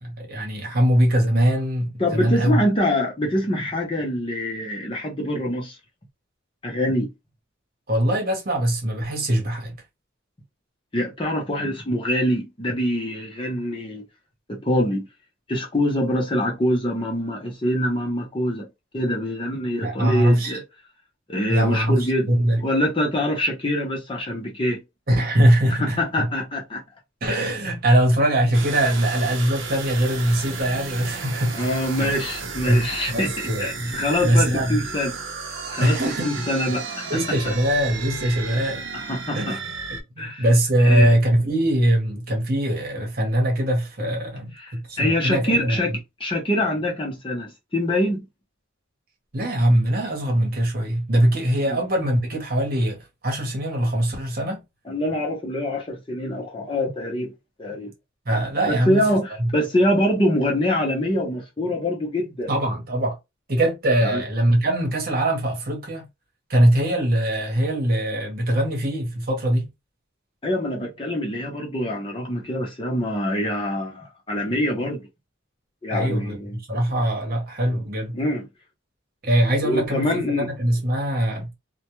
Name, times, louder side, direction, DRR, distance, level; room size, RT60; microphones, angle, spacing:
voice 1, 0.0-2.6 7.9-9.8 19.8-20.6 21.5-22.6 25.1-26.3 27.2-31.7 32.0-32.1 32.6-33.9 34.2-34.8 35.8-36.5 37.1-38.8 39.3-39.6 39.9-45.8 49.3-53.0 53.2-54.6 58.3-59.1 59.4-59.5 62.5-63.2 63.5-66.0 66.5-69.7 75.9-78.2 79.2-81.5, right 1 dB, 45° right, 1.0 m, -22 dB
voice 2, 2.0-5.8 6.6-7.1 10.9-14.0 14.5-15.1 15.5-18.7 18.9-20.6 21.3-22.3 22.6-24.8 25.8-26.8 31.5-35.2 35.5-36.0 36.2-37.2 37.4-37.5 38.9-39.6 40.2-40.5 40.8-41.1 44.6-48.2 51.6-51.8 54.9-57.3 57.6-57.9 58.7-62.5 64.0-64.2 70.4-75.0 75.8-76.6 78.1-78.5 79.6-80.5, left 1 dB, 25° left, 0.7 m, -25 dB
sound 1, 28.5-40.0, right 4 dB, 70° right, 0.7 m, -34 dB
2.3 x 2.2 x 2.9 m
head